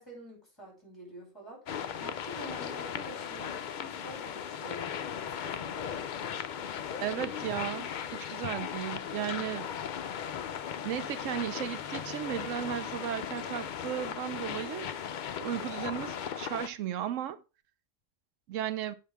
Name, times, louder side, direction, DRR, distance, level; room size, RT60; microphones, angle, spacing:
voice 1, 0.0-6.0 6.6-7.3, right 1 dB, 20° left, 5.3 m, -48 dB
sound 1, 1.7-16.7, left 8 dB, 60° left, 0.5 m, -37 dB
voice 2, 7.0-9.7 10.8-14.9 15.4-17.4 18.5-18.9, right 10 dB, 90° right, 1.0 m, -35 dB
8.6 x 5.7 x 3.4 m
omnidirectional pair, 1.3 m